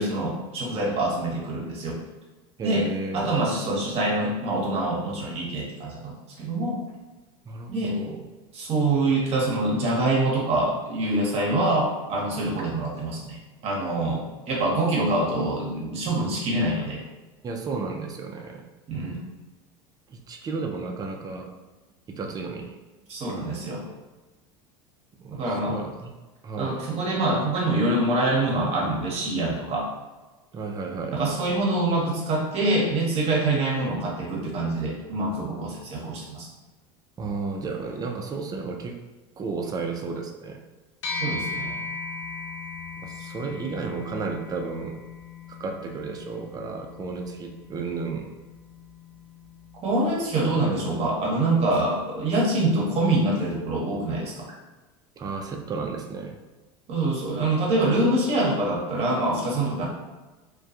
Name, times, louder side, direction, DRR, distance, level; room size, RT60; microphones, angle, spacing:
voice 1, 0.0-2.0 2.6-2.9 3.1-6.7 7.7-8.0 8.5-13.4 13.6-17.0 18.9-19.2 23.1-23.9 25.3-25.8 26.6-29.9 31.1-36.5 41.2-41.8 49.8-54.5 56.9-59.9, right 2 dB, 45° right, -3 dB, 0.8 m, -25 dB
voice 2, 2.6-3.3 7.4-8.2 17.4-18.7 20.1-21.6 22.1-22.8 25.2-26.1 26.4-26.8 30.5-31.2 37.2-39.0 39.4-40.6 43.0-45.0 45.5-48.3 50.5-50.6 55.2-56.4, right 4 dB, 25° right, 3 dB, 0.4 m, -33 dB
sound 1, 41.0-50.6, left 4 dB, 85° left, 0.6 m, -38 dB
2.2 x 2.2 x 2.7 m, 1.2 s
hypercardioid pair, 90°, 15 cm